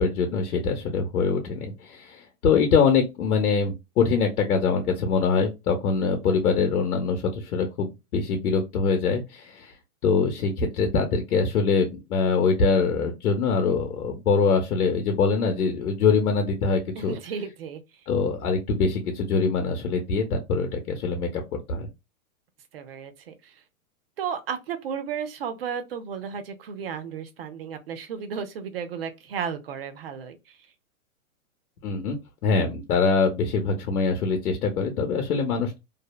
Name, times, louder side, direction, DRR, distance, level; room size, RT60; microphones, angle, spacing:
voice 1, 0.0-9.7 10.0-17.2 18.1-21.4 21.7-21.9 31.8-35.8, left 5 dB, 90° left, 0.8 m, -24 dB
voice 2, 17.0-17.8 22.7-23.6 24.2-30.6, right 7 dB, 45° right, 0.5 m, -34 dB
2.6 x 2.1 x 2.3 m
hypercardioid pair, 165°, 43 cm